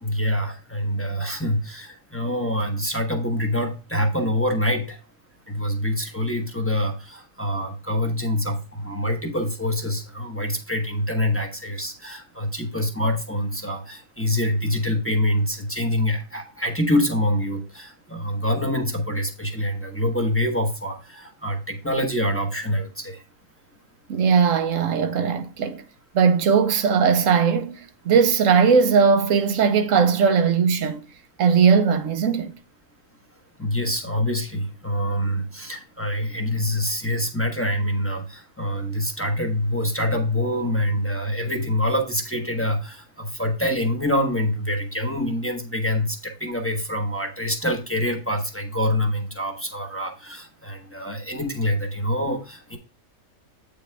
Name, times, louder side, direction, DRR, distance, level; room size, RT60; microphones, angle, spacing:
voice 1, 0.0-5.0 5.5-23.2 33.6-52.8, left 1 dB, 10° left, 0.8 m, -25 dB
voice 2, 24.1-25.8 26.1-27.8 28.0-31.0 31.4-32.5, right 6 dB, 65° right, 1.1 m, -19 dB
8.4 x 5.0 x 3.4 m
omnidirectional pair, 1.5 m